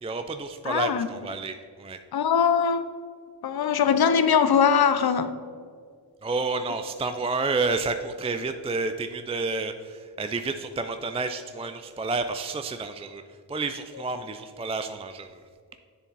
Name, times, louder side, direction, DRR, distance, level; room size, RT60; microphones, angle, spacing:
voice 1, 0.0-2.0 6.2-13.2 13.5-15.4, right 3 dB, 15° right, 8 dB, 0.3 m, -30 dB
voice 2, 0.6-1.1 2.1-2.9 3.4-5.3, left 7 dB, 55° left, 11 dB, 0.6 m, -21 dB
7.3 x 6.9 x 4.0 m, 2.1 s
cardioid pair, 70°, 47 cm